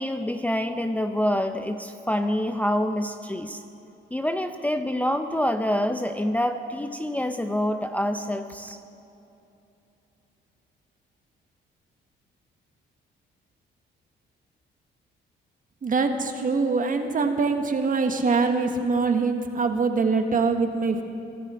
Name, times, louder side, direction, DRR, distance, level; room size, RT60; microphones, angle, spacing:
voice 1, 0.0-3.6 4.1-8.8, equal, 5° left, 6 dB, 0.6 m, -26 dB
voice 2, 15.8-21.0, right 4 dB, 40° right, 6 dB, 1.4 m, -23 dB
23.5 x 12.0 x 4.3 m, 2.8 s
cardioid pair, 90°, 20 cm